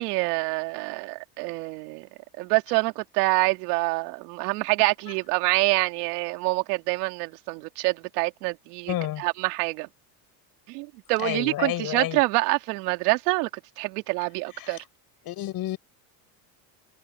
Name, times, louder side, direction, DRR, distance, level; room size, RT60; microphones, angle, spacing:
voice 1, 0.0-2.1 2.4-8.9 9.2-9.9 10.7-13.5 13.8-14.8, right 25 dB, 80° right, 2.3 m, -26 dB
voice 2, 8.9-9.3 11.2-12.2 14.5-14.8 15.2-15.8, left 13 dB, 50° left, 4.5 m, -30 dB
supercardioid pair, 125°, 46 cm